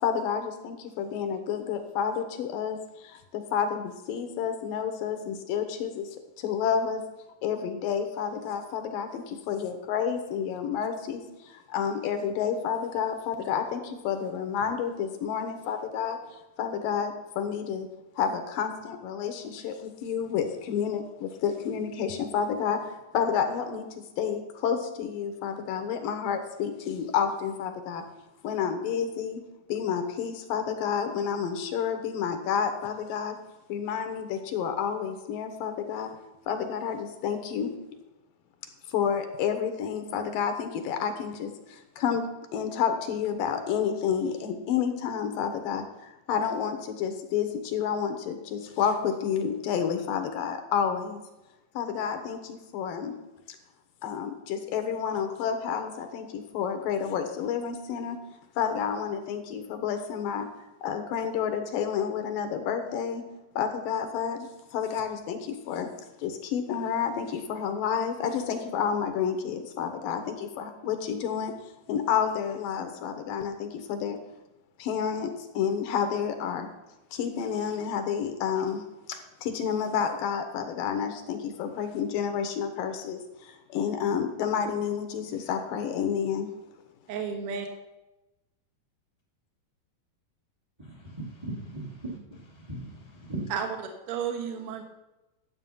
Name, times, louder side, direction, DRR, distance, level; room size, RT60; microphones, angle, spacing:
voice 1, 0.0-6.1 6.4-7.0 7.4-16.2 16.6-17.9 18.2-22.8 23.1-28.0 28.4-29.4 29.7-33.4 33.7-36.1 36.5-37.7 38.9-42.2 42.5-51.2 51.7-53.1 54.0-58.2 58.6-60.5 60.8-63.2 63.6-65.9 66.2-71.5 71.9-74.2 74.8-76.7 77.1-86.5, left 7 dB, 80° left, 7 dB, 2.7 m, -30 dB
voice 2, 87.1-87.6 93.5-93.8 94.1-94.8, right 7 dB, 55° right, 3 dB, 1.8 m, -32 dB
voice 3, 90.8-93.5, right 2 dB, 15° right, -1 dB, 0.8 m, -38 dB
11.5 x 8.0 x 5.5 m, 1.0 s
omnidirectional pair, 4.1 m